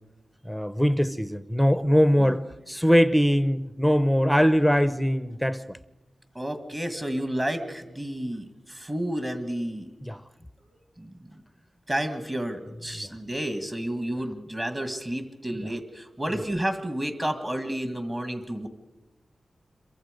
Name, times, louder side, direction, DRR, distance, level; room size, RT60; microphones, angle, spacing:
voice 1, 0.4-5.8 10.0-10.2, equal, ahead, 0.7 m, -22 dB
voice 2, 6.3-9.9 11.0-11.4 11.9-18.7, right 1 dB, 25° right, 1.8 m, -31 dB
27.0 x 23.0 x 5.2 m
wide cardioid pair, 100°, 0 cm